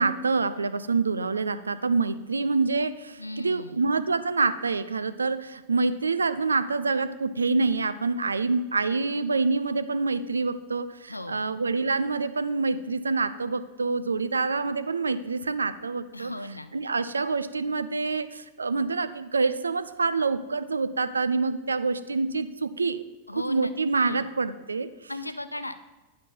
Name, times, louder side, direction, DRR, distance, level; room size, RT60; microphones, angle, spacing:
voice 1, 0.0-16.3 16.7-23.0 23.4-24.9, right 4 dB, 75° right, 13 dB, 0.4 m, -26 dB
voice 2, 3.2-3.9 11.1-11.4 16.1-16.7 23.3-24.3 25.1-25.8, left 2 dB, 85° left, 12 dB, 0.4 m, -37 dB
9.6 x 4.3 x 5.6 m, 1.1 s
figure-of-eight pair, 90°, 0 cm